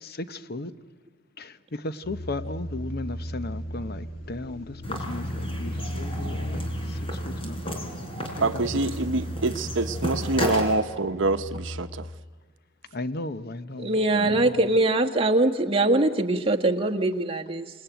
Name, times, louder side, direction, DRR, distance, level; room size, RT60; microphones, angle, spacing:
voice 1, 0.0-0.7 1.4-7.8 8.2-8.6 12.9-13.9 14.2-14.6, left 2 dB, 50° left, 0.9 m, -36 dB
sound 1, 2.0-11.8, equal, 85° left, 2.9 m, -35 dB
sound 2, 4.8-10.7, equal, 30° left, 4.6 m, -33 dB
voice 2, 8.4-11.9 14.1-14.3, right 3 dB, 65° right, 0.9 m, -26 dB
voice 3, 13.8-17.7, right 2 dB, 30° right, 1.7 m, -22 dB
28.0 x 20.0 x 9.1 m
head